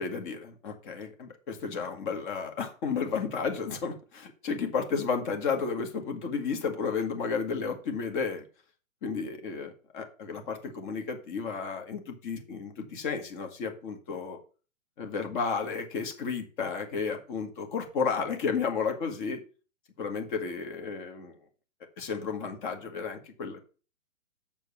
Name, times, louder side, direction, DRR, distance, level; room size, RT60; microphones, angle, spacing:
voice 1, 0.0-8.4 9.0-14.4 15.0-19.4 20.0-21.4 22.0-23.6, left 5 dB, 35° left, 4 dB, 1.9 m, -32 dB
7.3 x 4.5 x 6.9 m, 0.37 s
hypercardioid pair, 140°, 42 cm